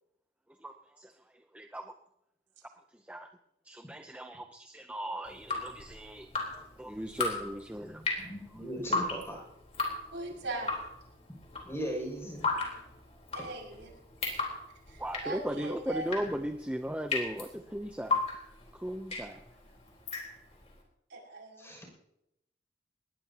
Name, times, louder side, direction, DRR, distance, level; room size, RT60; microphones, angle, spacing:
voice 1, 0.6-2.0 2.9-3.3 3.6-8.3 15.0-18.2 18.7-19.4, right 1 dB, 5° right, 5 dB, 0.6 m, -38 dB
Drip, 5.3-20.7, left 3 dB, 35° left, 3.9 m, -36 dB
voice 2, 7.8-9.5 11.3-11.4 11.6-12.4 21.6-21.8, equal, 15° left, 0 dB, 6.5 m, -38 dB
voice 3, 10.1-10.8 13.3-13.9 14.9-16.1 21.1-21.8, right 2 dB, 80° right, -1 dB, 6.2 m, -40 dB
20.0 x 20.0 x 2.9 m, 0.83 s
head